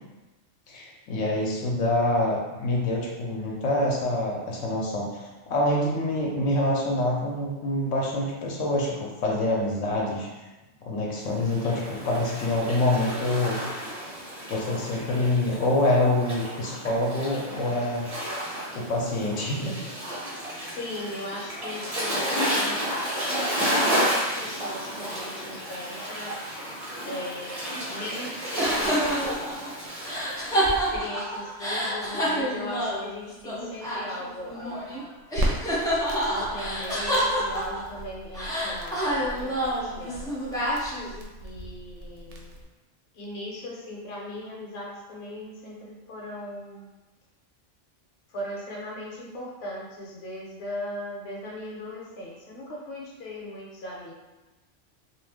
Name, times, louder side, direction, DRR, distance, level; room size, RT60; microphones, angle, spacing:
voice 1, 0.7-10.3 10.8-13.6 14.5-18.1 18.7-19.8, left 1 dB, 85° left, -3 dB, 1.0 m, -26 dB
Waves surf, 11.3-30.8, equal, 35° right, 0.9 m, -32 dB
voice 2, 20.3-26.3 27.0-29.7 30.7-35.2 36.2-40.3 41.4-42.5 43.1-46.9 48.3-54.1, left 1 dB, 60° left, -3 dB, 0.9 m, -38 dB
sound 1, 28.6-35.0 35.3-38.0 38.3-41.2, equal, 5° left, 0.4 m, -28 dB
Crackle, 35.3-42.6, right 1 dB, 75° right, 0.9 m, -36 dB
2.5 x 2.4 x 3.4 m, 1.1 s
omnidirectional pair, 1.2 m